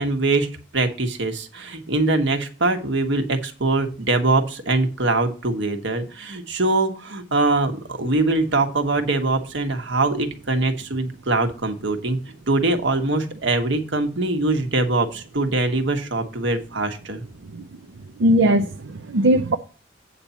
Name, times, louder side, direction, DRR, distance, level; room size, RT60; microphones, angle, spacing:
voice 1, 0.0-12.2 12.5-17.2, right 2 dB, 70° right, 1.4 m, -23 dB
voice 2, 18.2-19.6, right 1 dB, 90° right, 0.6 m, -19 dB
8.8 x 4.2 x 7.0 m
head